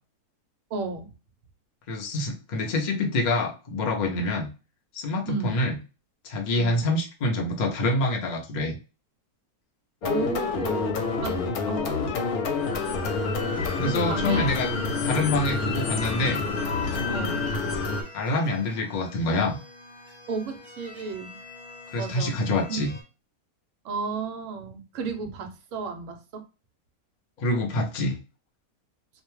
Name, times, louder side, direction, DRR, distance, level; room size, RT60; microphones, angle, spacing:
voice 1, 0.7-1.1 5.3-5.6 6.5-6.9 10.0-12.3 12.7-12.9 13.8-14.5 15.1-15.4 17.1-17.5 20.3-21.4 22.0-22.8 23.8-26.5, right 4 dB, 65° right, 5 dB, 0.9 m, -33 dB
voice 2, 1.9-4.5 4.9-5.8 6.2-8.8 13.8-14.7 15.0-16.4 16.8-17.0 18.1-19.6 21.9-22.9 27.4-28.2, left 2 dB, 60° left, 1 dB, 0.4 m, -26 dB
sound 1, 10.0-18.0, left 4 dB, 80° left, 1.1 m, -28 dB
sound 2, 12.4-23.0, left 2 dB, 35° left, 0.8 m, -46 dB
2.5 x 2.1 x 3.0 m, 0.32 s
omnidirectional pair, 1.6 m